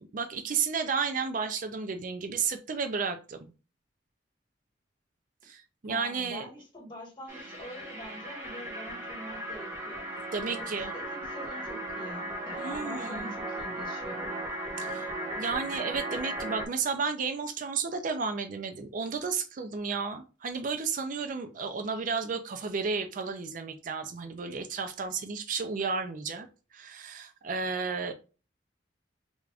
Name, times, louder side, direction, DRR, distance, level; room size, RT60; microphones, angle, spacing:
voice 1, 0.1-3.5 5.4-6.5 10.3-10.9 12.6-13.3 14.8-15.1 15.3-26.5 26.7-28.1, right 5 dB, 45° right, 7 dB, 0.4 m, -32 dB
voice 2, 5.9-10.1 10.5-14.3, equal, 25° left, -1 dB, 1.3 m, -45 dB
sound 1, 7.3-16.7, right 1 dB, 15° right, 0.9 m, -37 dB
3.5 x 2.5 x 3.3 m, 0.33 s
head